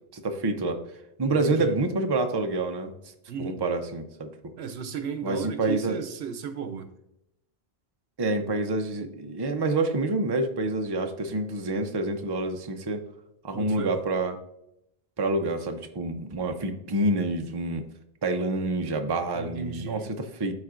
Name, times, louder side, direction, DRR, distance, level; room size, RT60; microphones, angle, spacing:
voice 1, 0.1-0.8 1.2-2.9 3.4-4.3 5.2-6.0 8.2-13.0 13.4-14.4 15.2-17.9 18.2-20.5, right 2 dB, 30° right, 5 dB, 0.6 m, -27 dB
voice 2, 1.3-1.7 3.3-3.6 4.6-6.9 13.5-13.9 19.3-20.1, right 7 dB, 80° right, 9 dB, 0.9 m, -35 dB
12.5 x 4.2 x 2.5 m, 0.82 s
omnidirectional pair, 1.1 m